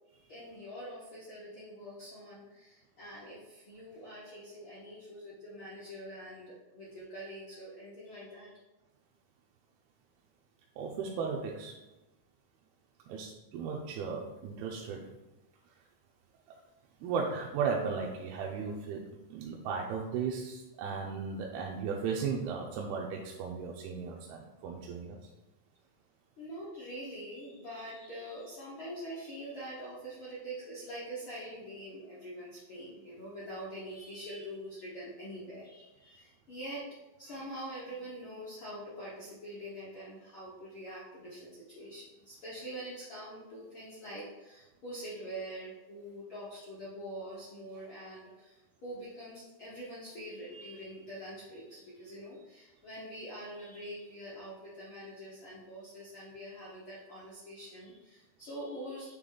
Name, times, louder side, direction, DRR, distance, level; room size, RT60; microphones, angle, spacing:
voice 1, 0.1-8.6 26.4-36.8 37.2-59.1, equal, 65° left, -8 dB, 1.2 m, -44 dB
voice 2, 10.8-11.7 13.1-15.0 17.0-25.3, right 5 dB, 90° right, -1 dB, 2.5 m, -36 dB
8.9 x 3.4 x 3.9 m, 1.0 s
omnidirectional pair, 4.3 m